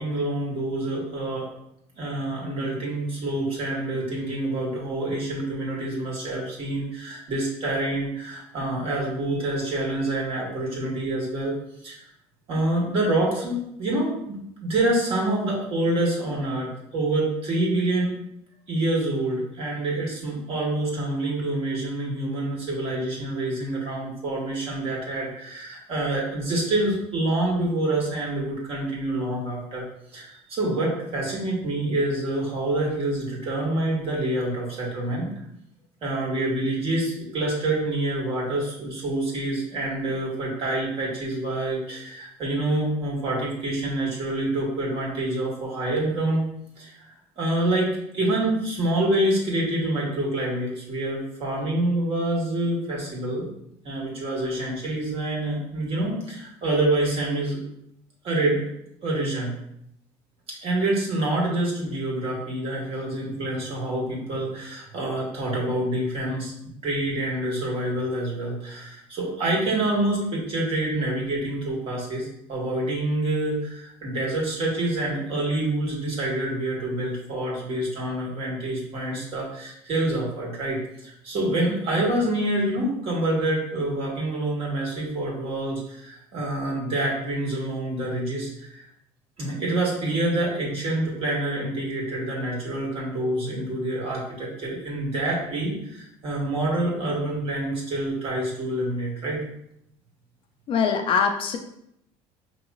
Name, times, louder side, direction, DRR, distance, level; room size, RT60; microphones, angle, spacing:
voice 1, 0.0-1.5 2.0-11.5 11.8-12.0 12.5-18.2 18.7-29.8 30.1-35.3 36.0-46.4 46.8-53.5 53.8-57.6 58.2-58.6 59.0-59.5 60.5-88.9 89.4-99.4, right 1 dB, 50° right, -3 dB, 1.6 m, -27 dB
voice 2, 100.7-101.6, left 6 dB, 45° left, 5 dB, 0.5 m, -22 dB
5.3 x 3.0 x 2.4 m, 0.75 s
cardioid pair, 115°, 13 cm